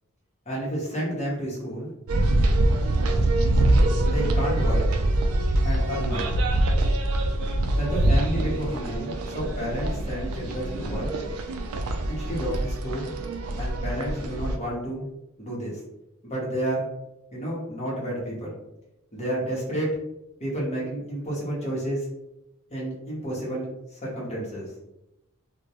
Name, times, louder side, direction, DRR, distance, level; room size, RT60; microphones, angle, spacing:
voice 1, 0.5-1.9 4.0-4.8 5.6-6.4 7.7-11.1 12.1-13.1 13.6-15.1 15.4-15.8 16.2-16.9 17.3-18.5 19.1-20.0 20.4-22.1 22.7-24.7, right 1 dB, 30° left, -5 dB, 0.8 m, -30 dB
sound 1, 2.1-14.6, right 1 dB, 75° right, 0.3 m, -24 dB
2.2 x 2.1 x 2.8 m, 0.90 s
head